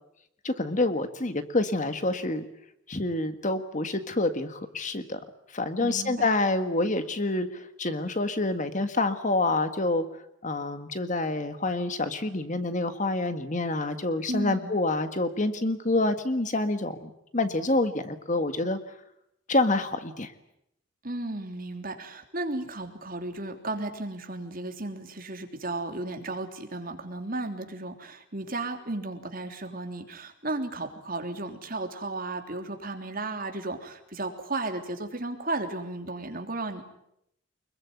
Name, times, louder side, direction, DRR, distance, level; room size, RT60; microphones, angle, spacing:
voice 1, 0.4-2.5 2.9-5.2 5.5-10.1 10.4-18.8 19.5-20.3, left 2 dB, 35° left, 9 dB, 1.7 m, -27 dB
voice 2, 5.8-6.3 14.3-14.8 21.0-36.8, right 2 dB, 45° right, 5 dB, 3.3 m, -34 dB
25.5 x 22.0 x 9.6 m, 0.78 s
head